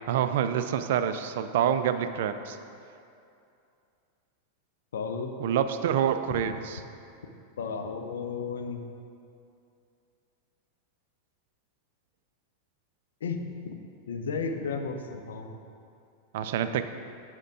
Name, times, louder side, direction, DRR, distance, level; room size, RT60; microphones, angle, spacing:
voice 1, 0.1-2.6 5.4-6.8 16.3-16.8, right 9 dB, 55° right, 10 dB, 0.3 m, -27 dB
voice 2, 4.9-5.3 7.6-8.8 13.2-13.7 14.1-15.6, left 5 dB, 65° left, 5 dB, 0.5 m, -33 dB
8.7 x 3.7 x 4.8 m, 2.5 s
figure-of-eight pair, 90°, 0 cm